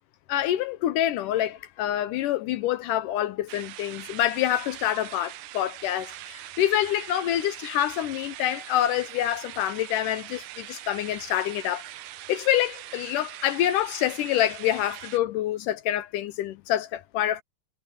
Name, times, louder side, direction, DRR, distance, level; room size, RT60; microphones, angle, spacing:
voice 1, 0.3-11.8 12.3-17.4, left 12 dB, 80° left, 2.0 m, -26 dB
sound 1, 3.5-15.2, right 16 dB, 85° right, 2.8 m, -42 dB
omnidirectional pair, 4.4 m